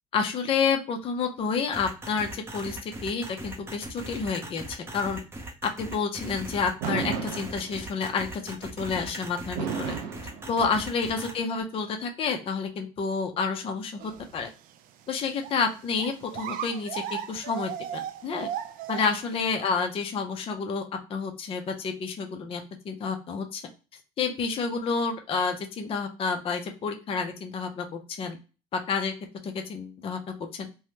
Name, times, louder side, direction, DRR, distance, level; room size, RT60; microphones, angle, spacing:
voice 1, 0.1-5.2 5.8-10.0 10.5-14.5 15.1-18.5 18.9-20.8 21.1-23.6 24.2-28.4 28.7-29.1 29.4-30.2 30.5-30.7, left 5 dB, 35° left, 4 dB, 0.5 m, -29 dB
sound 1, 1.7-11.3, right 1 dB, 15° right, 0.6 m, -39 dB
Fireworks, 6.8-8.1 9.6-11.1, right 7 dB, 90° right, 0.8 m, -33 dB
sound 2, 14.0-14.4 14.7-14.8 15.4-15.5 15.9-19.3, right 10 dB, 60° right, 0.4 m, -36 dB
3.3 x 2.1 x 2.8 m, 0.32 s
cardioid pair, 120°, 17 cm